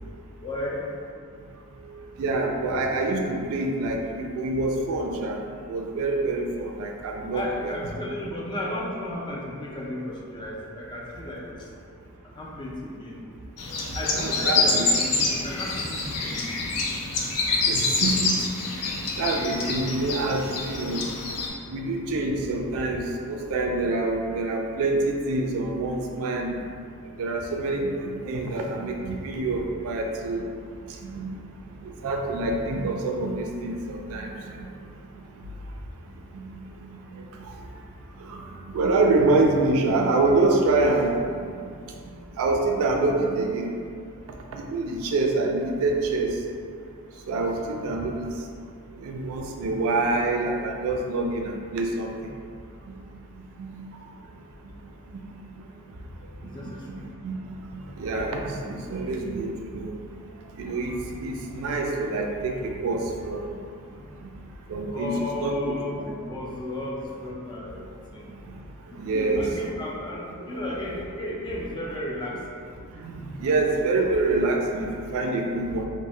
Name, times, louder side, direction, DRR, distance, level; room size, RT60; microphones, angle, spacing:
voice 1, 0.4-0.8 7.2-11.5 12.4-13.2 13.9-16.9 56.4-57.1 64.9-68.3 68.9-72.6, left 1 dB, 20° left, -3 dB, 0.3 m, -34 dB
voice 2, 2.2-5.4 5.7-7.7 14.1-14.8 17.7-18.3 19.2-21.0 21.7-26.5 27.2-30.4 31.0-31.3 32.0-34.7 36.3-36.6 38.3-38.4 38.7-41.1 42.4-43.7 44.5-46.3 47.3-48.3 49.0-52.1 53.6-53.8 57.2-57.5 58.0-59.9 60.6-62.5 62.8-63.4 64.7-65.1 65.4-66.1 69.0-69.4 73.0-74.9 75.1-75.9, right 2 dB, 65° right, 1 dB, 0.3 m, -26 dB
sound 1, 13.6-21.5, left 3 dB, 90° left, 0.4 m, -26 dB
2.0 x 2.0 x 3.6 m, 2.3 s
head